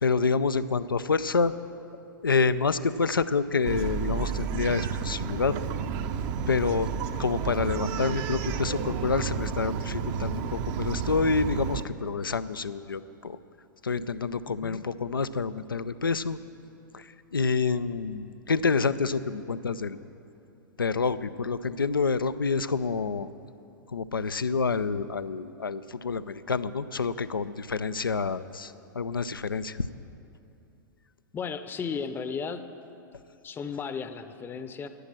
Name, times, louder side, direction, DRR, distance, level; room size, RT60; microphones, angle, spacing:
voice 1, 0.0-1.5 2.2-5.5 6.5-6.9 7.2-13.4 13.8-16.4 16.9-20.0 20.8-23.3 23.9-29.9, left 4 dB, 85° left, 14 dB, 0.5 m, -28 dB
Bark, 3.6-11.8, right 7 dB, 40° right, 0.7 m, -31 dB
voice 2, 14.4-14.8 31.3-32.6 33.4-34.9, left 6 dB, 20° left, 11 dB, 0.7 m, -35 dB
11.5 x 10.5 x 7.5 m, 2.7 s
figure-of-eight pair, 100°, 11 cm